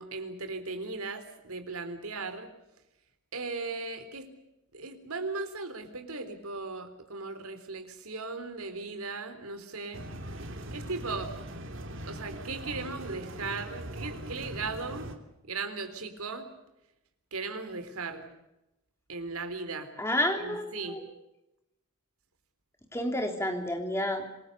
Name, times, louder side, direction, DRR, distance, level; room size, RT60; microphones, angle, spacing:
voice 1, 0.0-2.5 3.3-4.3 4.7-10.0 10.7-11.4 12.1-15.1 15.4-16.5 17.3-18.3 19.1-19.9 20.4-21.0, right 3 dB, 85° right, 9 dB, 3.8 m, -37 dB
sound 1, 9.9-15.2, right 1 dB, 60° right, 2.8 m, -40 dB
voice 2, 20.0-21.0 22.9-24.2, left 1 dB, 10° left, 4 dB, 3.4 m, -30 dB
27.0 x 21.0 x 6.9 m, 0.92 s
head